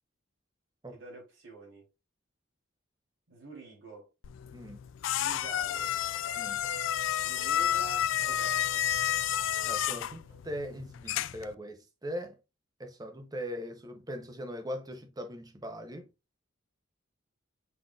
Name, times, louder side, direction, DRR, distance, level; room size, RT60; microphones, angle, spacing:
voice 1, 0.9-1.9 3.3-4.1 5.2-5.9 7.2-8.9, right 3 dB, 70° right, 2.8 m, -47 dB
sound 1, 4.2-11.5, left 11 dB, 75° left, 0.3 m, -31 dB
sound 2, 5.7-10.7, right 2 dB, 50° right, 1.7 m, -51 dB
voice 2, 9.6-12.4 12.8-16.1, equal, 20° right, 0.7 m, -40 dB
5.7 x 3.8 x 2.3 m
head